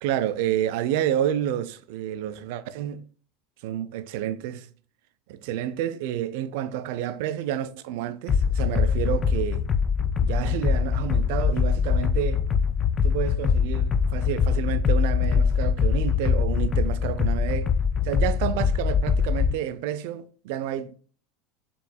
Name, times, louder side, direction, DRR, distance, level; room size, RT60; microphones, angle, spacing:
voice 1, 0.0-3.0 3.6-4.7 5.3-9.6 10.2-12.4 13.0-17.7 18.0-20.9, right 11 dB, 70° right, 0.3 m, -29 dB
sound 1, 8.3-19.5, left 6 dB, 35° left, 0.3 m, -23 dB
4.4 x 3.1 x 2.2 m
hypercardioid pair, 85°, 0 cm